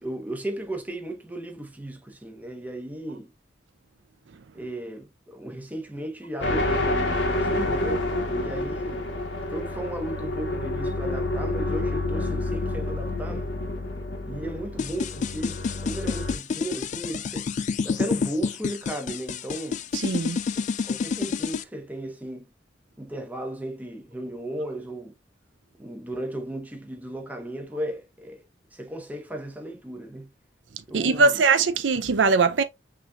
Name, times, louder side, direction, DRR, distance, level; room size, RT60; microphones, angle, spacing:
voice 1, 0.0-3.3 4.5-9.1 9.5-13.5 14.2-17.5 17.8-19.8 20.8-22.5 23.0-25.1 25.8-28.4 28.7-30.3 30.9-31.4, right 1 dB, 10° right, 1.0 m, -35 dB
sound 1, 6.4-16.4, left 2 dB, 70° left, 1.4 m, -28 dB
sound 2, 14.8-21.6, left 5 dB, 40° left, 0.3 m, -28 dB
voice 2, 19.9-20.4 30.9-32.6, right 4 dB, 80° right, 0.6 m, -21 dB
5.8 x 3.2 x 2.4 m
head